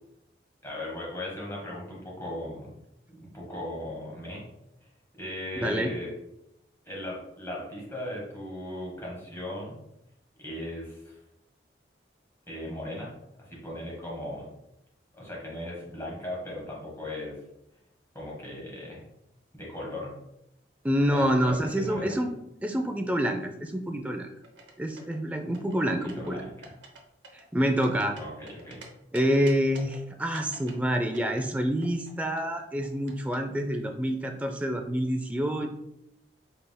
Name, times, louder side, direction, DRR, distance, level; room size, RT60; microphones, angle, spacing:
voice 1, 0.6-2.7 3.1-4.4 5.2-6.1 6.8-9.8 10.4-11.2 12.5-13.1 13.4-14.5 15.1-17.4 18.1-19.0 19.5-20.1 21.1-22.2 25.9-26.7 28.1-28.9, left 1 dB, 15° left, -4 dB, 1.3 m, -38 dB
voice 2, 5.6-5.9 20.8-22.3 22.6-24.3 24.8-26.4 27.3-28.1 29.1-35.7, equal, 10° right, 4 dB, 0.3 m, -27 dB
sound 1, 24.4-25.2 25.5-26.3 26.6-27.0 27.2-28.8 29.1-30.0 30.3-32.1 32.4-33.4, right 3 dB, 85° right, 0.8 m, -48 dB
5.3 x 3.4 x 2.2 m, 0.82 s
head